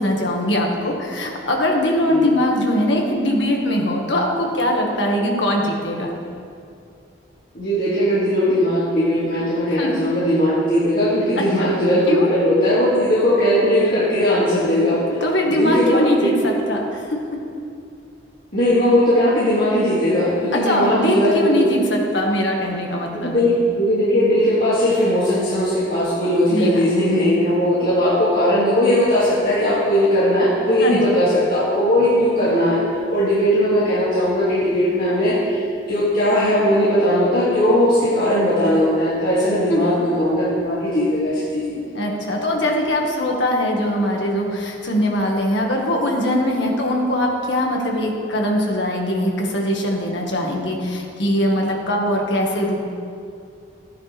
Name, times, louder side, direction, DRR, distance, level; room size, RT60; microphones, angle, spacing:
voice 1, 0.0-6.1 9.8-9.9 11.4-11.7 12.1-12.3 15.1-17.2 20.7-23.4 26.5-26.8 30.8-31.1 39.7-39.9 41.9-52.9, left 1 dB, 90° left, 0 dB, 1.9 m, -21 dB
voice 2, 7.5-15.2 15.5-16.3 18.5-21.7 23.3-32.8 33.1-41.8, equal, 55° left, -10 dB, 2.5 m, -18 dB
15.0 x 10.5 x 3.5 m, 2.4 s
head